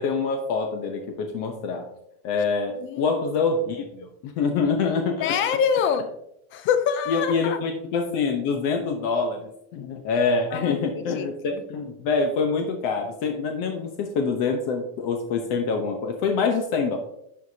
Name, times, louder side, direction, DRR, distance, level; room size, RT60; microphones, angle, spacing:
voice 1, 0.0-1.9 2.2-5.6 7.1-17.0, left 4 dB, 60° left, 4 dB, 1.0 m, -25 dB
voice 2, 5.2-6.1 6.5-7.6 10.5-11.3 11.5-11.6, left 7 dB, 30° left, 11 dB, 0.4 m, -25 dB
11.5 x 4.7 x 2.8 m, 0.79 s
cardioid pair, 165°, 44 cm